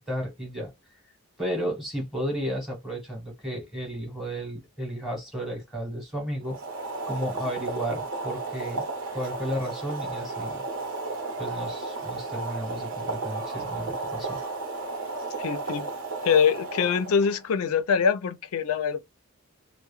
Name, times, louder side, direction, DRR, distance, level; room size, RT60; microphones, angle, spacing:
voice 1, 0.1-0.7 1.4-6.6 7.1-10.6 11.4-14.4, equal, ahead, 0.9 m, -33 dB
Boiling, 6.4-17.4, right 3 dB, 65° right, 0.9 m, -33 dB
voice 2, 15.4-15.9 16.2-19.0, left 6 dB, 85° left, 0.4 m, -24 dB
2.2 x 2.1 x 3.0 m
head